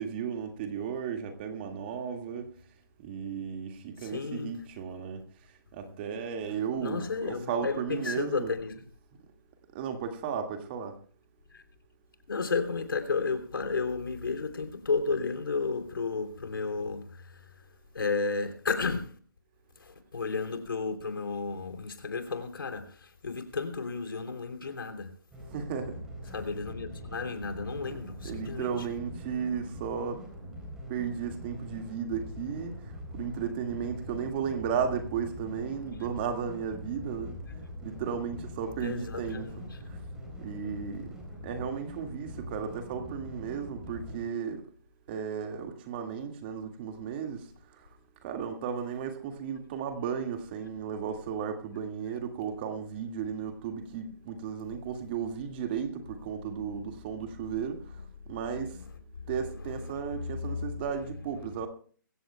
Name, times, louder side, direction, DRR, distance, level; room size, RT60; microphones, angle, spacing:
voice 1, 0.0-2.5 3.0-5.2 5.7-8.5 9.7-10.9 25.5-26.0 27.9-28.0 28.2-30.2 30.9-32.7 33.1-37.3 37.8-39.5 40.4-41.1 41.4-44.6 45.1-47.5 48.2-57.8 58.3-58.7 59.3-61.7, right 7 dB, 25° right, 1.9 m, -34 dB
voice 2, 4.0-4.6 6.8-8.7 11.5-11.6 12.3-17.6 17.9-19.2 19.8-25.1 26.3-28.9 38.8-39.8 58.5-58.8 59.2-60.6, left 4 dB, 75° left, 3.2 m, -33 dB
sound 1, 25.3-44.2, left 1 dB, 5° right, 3.9 m, -43 dB
22.5 x 16.5 x 2.2 m
hypercardioid pair, 160°, 12 cm